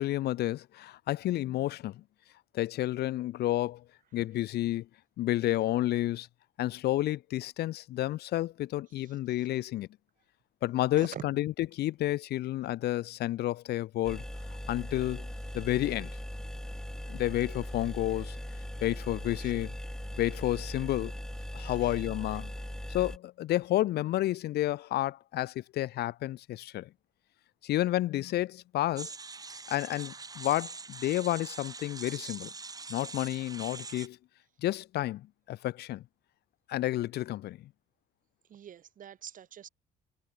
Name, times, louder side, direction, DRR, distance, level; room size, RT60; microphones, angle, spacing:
voice 1, 0.0-2.0 2.5-3.8 4.1-4.9 5.2-6.3 6.6-9.9 10.6-14.2 14.7-15.3 15.5-16.1 17.1-18.4 18.8-19.7 20.2-21.1 21.5-22.5 22.9-26.9 27.6-29.1 29.7-32.5 32.9-34.2 34.6-36.0 36.7-37.6, left 15 dB, 75° left, 3.3 m, -30 dB
sound 1, 14.0-23.2, left 1 dB, 5° left, 7.7 m, -39 dB
voice 2, 21.6-21.9 38.5-39.7, right 9 dB, 50° right, 4.8 m, -45 dB
sound 2, 29.0-34.1, right 4 dB, 20° right, 2.8 m, -43 dB
cardioid pair, 110°, 17 cm